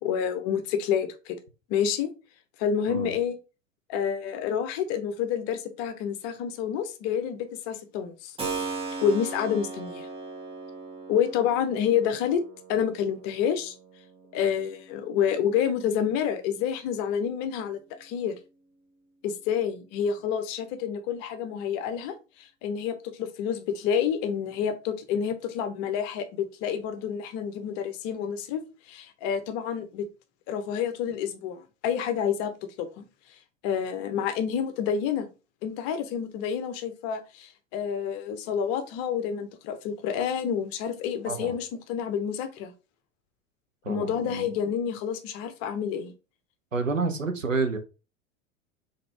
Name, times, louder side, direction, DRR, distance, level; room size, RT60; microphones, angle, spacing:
voice 1, 0.0-1.4 1.7-2.1 2.6-3.4 3.9-8.3 9.0-10.1 11.1-12.4 12.7-13.7 14.3-18.3 19.2-28.6 28.9-30.0 30.5-32.5 32.8-33.0 33.6-35.3 35.6-42.7 43.9-46.1, left 8 dB, 40° left, 0.8 m, -28 dB
Keyboard (musical), 8.4-17.0, right 4 dB, 15° right, 1.1 m, -39 dB
voice 2, 43.8-44.5 46.7-47.8, right 4 dB, 85° right, 0.8 m, -29 dB
3.9 x 3.6 x 3.3 m
figure-of-eight pair, 80°, 38 cm